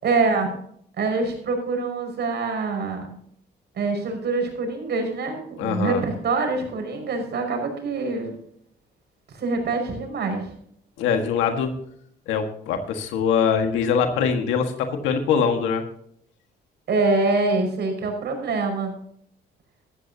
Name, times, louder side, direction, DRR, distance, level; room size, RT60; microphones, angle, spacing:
voice 1, 0.0-0.5 1.0-3.1 3.7-8.4 9.3-10.5 16.9-18.9, right 3 dB, 60° right, 4 dB, 5.6 m, -25 dB
voice 2, 5.6-6.0 11.0-11.7 12.3-15.8, left 6 dB, 90° left, 6 dB, 1.7 m, -23 dB
14.0 x 13.5 x 2.8 m, 0.64 s
cardioid pair, 80°, 19 cm